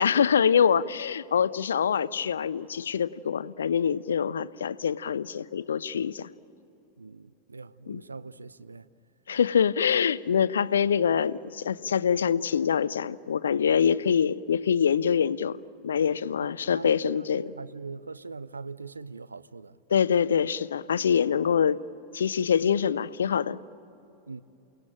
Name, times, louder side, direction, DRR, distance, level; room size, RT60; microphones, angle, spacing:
voice 1, 0.0-6.3 7.9-8.0 9.3-15.6 15.8-17.5 19.9-21.8 22.1-23.6, left 7 dB, 65° left, 0.6 m, -25 dB
voice 2, 7.0-8.9 13.8-13.9 16.4-16.9 17.3-19.8 24.3-24.4, right 4 dB, 80° right, 0.6 m, -42 dB
29.0 x 19.0 x 8.9 m
figure-of-eight pair, 90°, 0 cm